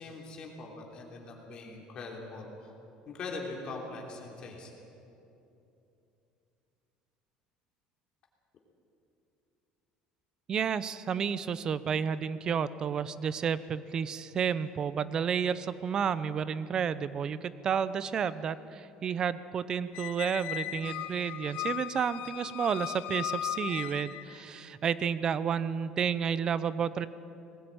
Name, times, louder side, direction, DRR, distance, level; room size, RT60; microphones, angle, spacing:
voice 1, 0.0-2.7 3.0-4.7, left 3 dB, 40° left, -1 dB, 3.2 m, -42 dB
voice 2, 10.5-27.1, right 7 dB, 30° right, 16 dB, 0.6 m, -31 dB
Squeak, 19.9-24.4, left 13 dB, 60° left, 0.8 m, -37 dB
20.0 x 16.0 x 8.8 m, 2.8 s
cardioid pair, 155°, 2 cm